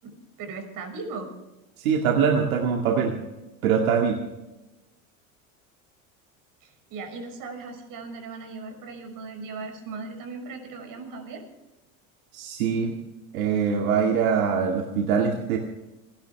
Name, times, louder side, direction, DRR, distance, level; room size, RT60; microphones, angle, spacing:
voice 1, 0.0-1.3 6.6-11.4, right 4 dB, 50° right, 5 dB, 6.1 m, -38 dB
voice 2, 1.8-3.2 3.6-4.2 12.3-13.0 13.3-15.6, right 6 dB, 80° right, 1 dB, 2.3 m, -23 dB
28.5 x 11.5 x 3.5 m, 1.0 s
hypercardioid pair, 95°, 41 cm